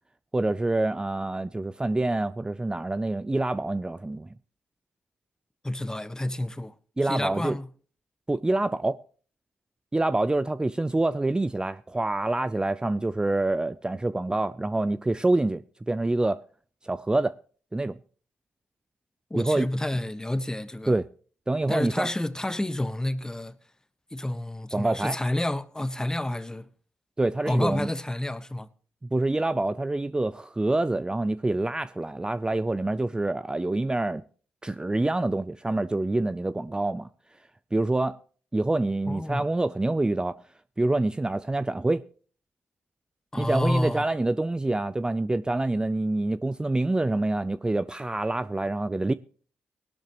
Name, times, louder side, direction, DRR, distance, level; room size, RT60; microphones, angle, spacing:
voice 1, 0.3-4.3 7.0-7.6 8.3-9.0 9.9-16.4 16.8-17.3 17.7-18.0 19.3-19.7 20.9-21.1 21.5-22.1 24.7-25.2 27.2-27.9 29.1-34.2 34.6-37.1 37.7-38.2 38.5-40.4 40.8-42.1 43.4-49.1, right 2 dB, 15° right, 0.5 m, -26 dB
voice 2, 5.6-6.7 7.0-7.7 19.3-21.0 21.7-23.6 24.1-26.7 27.4-28.7 39.1-39.5 43.3-44.0, left 1 dB, 15° left, 1.0 m, -29 dB
18.5 x 12.0 x 3.1 m
supercardioid pair, 50°, 5 cm